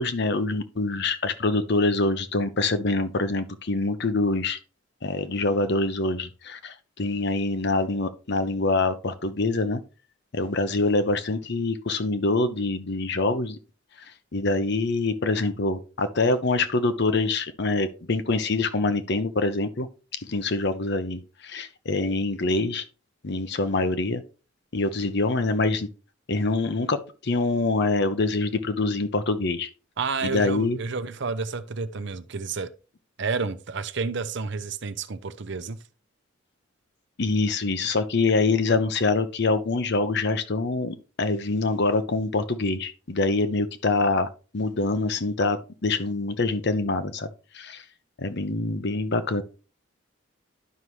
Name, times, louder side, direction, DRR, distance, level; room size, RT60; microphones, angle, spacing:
voice 1, 0.0-4.6 5.0-9.8 10.3-13.6 14.3-19.9 20.2-22.8 23.2-24.2 24.7-25.9 26.3-29.7 30.2-30.8 37.2-47.3 47.5-47.8 48.2-49.4, left 3 dB, 55° left, 0.8 m, -25 dB
voice 2, 30.0-32.7 33.2-35.8, right 4 dB, 60° right, 0.7 m, -30 dB
11.0 x 5.6 x 3.1 m
head